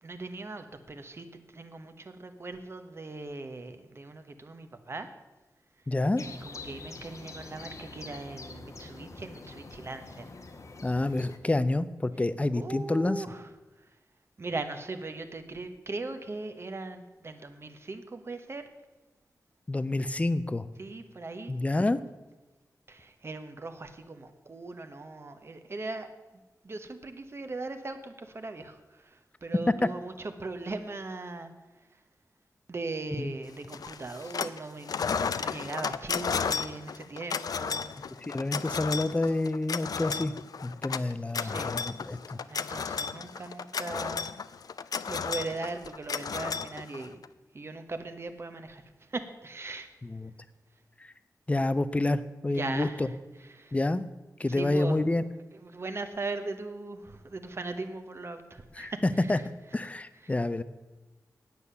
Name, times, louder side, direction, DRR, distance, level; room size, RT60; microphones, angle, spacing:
voice 1, 0.0-5.1 6.4-10.3 12.5-13.5 13.8-13.9 14.4-18.7 20.8-21.5 22.9-32.0 32.7-38.1 41.4-41.7 42.5-44.4 45.1-47.2 47.5-49.9 52.5-53.8 54.5-55.0 55.5-59.5 60.2-60.4, right 3 dB, 40° right, 8 dB, 1.0 m, -39 dB
voice 2, 5.9-6.2 10.8-13.2 19.7-20.7 21.5-22.0 33.2-33.3 38.3-40.3 40.6-42.4 50.0-50.3 51.5-53.1 53.7-54.0 54.4-55.2 58.8-58.9 59.3-59.4 59.7-60.6, left 2 dB, 20° left, 14 dB, 0.5 m, -28 dB
sound 1, 6.2-11.4, left 3 dB, 55° left, 1.0 m, -45 dB
sound 2, 33.7-34.6 34.9-47.3, left 6 dB, 75° left, 0.4 m, -33 dB
9.5 x 8.4 x 6.9 m, 1.1 s
wide cardioid pair, 130°, 6 cm